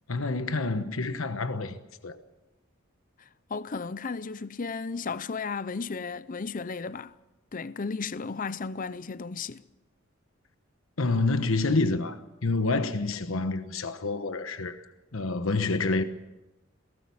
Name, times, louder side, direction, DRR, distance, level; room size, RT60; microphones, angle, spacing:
voice 1, 0.1-2.2 11.0-14.8 15.1-16.0, left 3 dB, 75° left, 1.1 m, -28 dB
voice 2, 3.5-7.1 7.5-9.6, left 4 dB, 40° left, 0.6 m, -34 dB
21.5 x 17.5 x 7.1 m
head